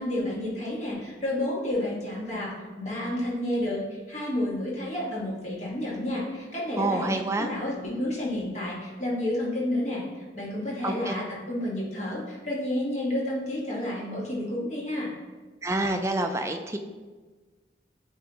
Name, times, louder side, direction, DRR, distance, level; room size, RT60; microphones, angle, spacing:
voice 1, 0.0-15.1, left 1 dB, 35° left, -5 dB, 1.6 m, -30 dB
voice 2, 6.8-7.5 10.8-11.1 15.6-16.8, right 2 dB, 15° right, 5 dB, 0.4 m, -27 dB
9.1 x 3.5 x 3.0 m, 1.3 s
head